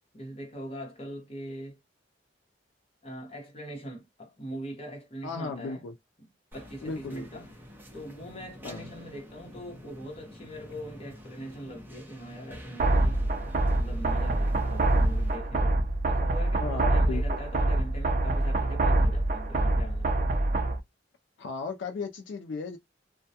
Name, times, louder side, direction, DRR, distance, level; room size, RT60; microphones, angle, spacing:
voice 1, 0.1-1.8 3.0-5.8 6.2-7.5 7.9-13.3 13.7-20.3, equal, 35° left, 0.9 m, -42 dB
voice 2, 5.2-5.9 6.8-7.3 8.6-8.9 16.6-17.2 21.4-22.8, left 4 dB, 70° left, 0.4 m, -35 dB
sound 1, 6.5-15.4, left 1 dB, 10° right, 0.7 m, -47 dB
sound 2, 12.8-20.8, right 2 dB, 45° right, 0.4 m, -25 dB
2.2 x 2.1 x 2.7 m
head